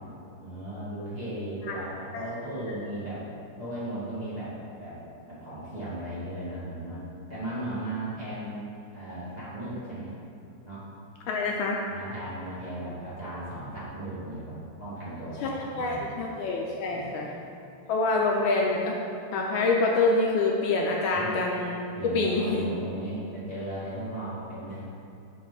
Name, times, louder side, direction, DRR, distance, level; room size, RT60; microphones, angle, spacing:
voice 1, 0.4-3.3 3.6-5.0 5.3-7.0 7.3-8.6 8.9-10.1 10.6-10.8 11.9-16.2 16.9-17.4 21.1-21.3 21.9-24.8, right 1 dB, 25° right, -11 dB, 1.3 m, -36 dB
voice 2, 11.3-11.8 15.4-17.3 17.9-19.0 19.3-21.8 22.1-22.6, left 3 dB, 75° left, -1 dB, 1.3 m, -26 dB
6.0 x 5.0 x 3.8 m, 2.8 s
omnidirectional pair, 2.4 m